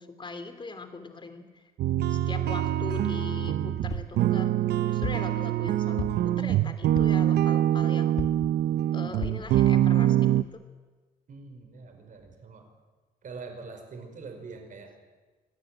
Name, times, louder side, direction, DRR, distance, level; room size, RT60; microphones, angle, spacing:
voice 1, 0.0-1.7 2.1-4.5 4.9-8.2 8.9-10.6, left 3 dB, 30° left, 8 dB, 3.0 m, -40 dB
sound 1, 1.8-10.4, right 12 dB, 90° right, 0.7 m, -24 dB
sound 2, 3.9-4.2 5.0-5.3 6.0-6.4 7.0-7.3 8.2-8.5 9.2-9.5 10.1-10.2 10.4-10.5, left 6 dB, 45° left, 1.6 m, -35 dB
voice 2, 11.3-12.7 13.2-14.9, right 4 dB, 55° right, 5 dB, 5.1 m, -43 dB
25.0 x 18.0 x 9.1 m, 1.3 s
cardioid pair, 130°, 16 cm